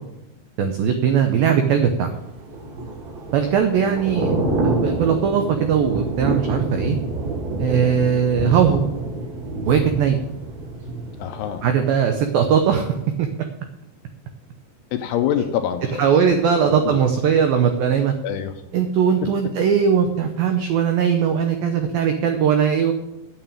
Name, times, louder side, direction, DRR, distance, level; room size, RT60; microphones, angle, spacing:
voice 1, 0.6-2.1 3.3-4.4 4.8-7.0 7.6-8.8 9.7-10.2 11.6-12.9 13.2-13.3 16.0-18.1 18.7-22.9, right 7 dB, 85° right, 6 dB, 2.0 m, -19 dB
Thunder / Rain, 2.3-12.2 12.6-12.8, right 2 dB, 55° right, 2.1 m, -27 dB
voice 2, 11.2-11.6 14.9-16.3 16.6-17.0 18.2-18.5 19.2-19.5, left 9 dB, 80° left, 7 dB, 2.5 m, -26 dB
9.1 x 7.0 x 8.9 m, 0.94 s
omnidirectional pair, 5.3 m